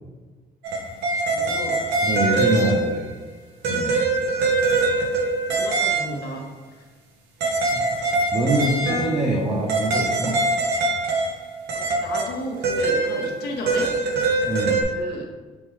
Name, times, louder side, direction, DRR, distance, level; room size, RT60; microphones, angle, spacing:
sound 1, 0.6-3.1 3.6-6.2 7.4-11.4 11.7-14.8, right 3 dB, 85° right, 0.9 m, -23 dB
voice 1, 1.3-1.8 2.3-2.5 5.5-6.5 11.7-13.9 14.9-15.3, left 1 dB, 70° left, 0 dB, 0.9 m, -33 dB
voice 2, 2.0-3.1 3.7-4.0 7.7-7.8 8.3-10.4 14.5-14.9, right 1 dB, 20° right, -5 dB, 0.8 m, -24 dB
4.6 x 3.7 x 3.1 m, 1.3 s
cardioid pair, 110°, 17 cm